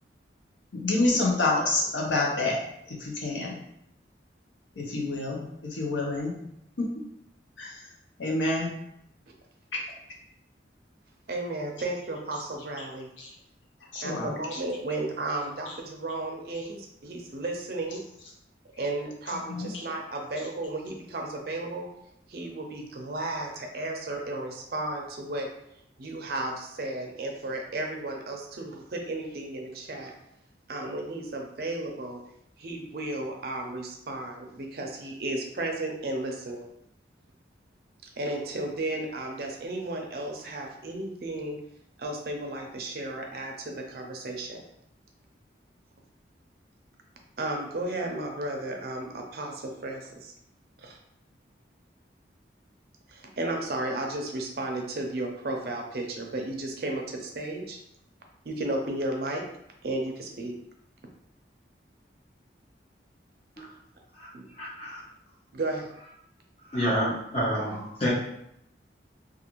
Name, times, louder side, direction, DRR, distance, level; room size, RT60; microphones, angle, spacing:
voice 1, 0.7-2.6 2.9-3.6 4.8-6.3 6.8-6.9 7.6-7.8 8.2-8.7 13.2-13.3 13.9-14.3 19.5-19.7, left 2 dB, 90° left, -1 dB, 0.7 m, -27 dB
voice 2, 11.3-13.1 14.0-18.0 18.8-21.9 22.3-25.5 26.0-30.1 30.7-32.2 32.6-36.7 38.2-41.6 42.0-44.6 47.4-50.3 50.8-51.0 53.1-57.8 58.4-59.4 59.8-60.5 64.3-64.4 65.5-65.9, right 2 dB, 55° right, 2 dB, 0.5 m, -34 dB
voice 3, 64.6-65.0 66.7-68.1, equal, 35° left, -10 dB, 0.6 m, -28 dB
2.4 x 2.4 x 2.9 m, 0.77 s
head